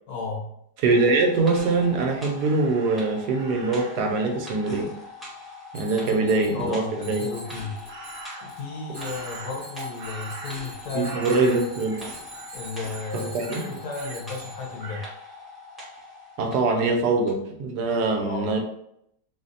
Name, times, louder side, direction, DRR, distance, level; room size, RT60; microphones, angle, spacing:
voice 1, 0.1-0.5 6.0-7.8 8.4-11.3 12.5-15.1 18.2-18.6, left 4 dB, 70° left, -3 dB, 1.4 m, -34 dB
voice 2, 0.8-4.9 5.7-7.2 10.9-12.0 13.1-13.7 16.4-18.6, right 3 dB, 90° right, 3 dB, 1.2 m, -23 dB
sound 1, 0.9-16.8 17.3-17.4, left 2 dB, ahead, 0.7 m, -42 dB
Crow, 2.4-4.1 7.9-8.6 9.0-10.8 11.0-12.0 12.3-12.6 12.9-14.2 14.8-15.1, right 2 dB, 70° right, 1.1 m, -42 dB
Bicycle bell, 5.7-6.7 7.0-8.6 8.9-14.8, right 2 dB, 40° right, 1.1 m, -44 dB
3.9 x 2.1 x 2.6 m, 0.74 s
omnidirectional pair, 1.7 m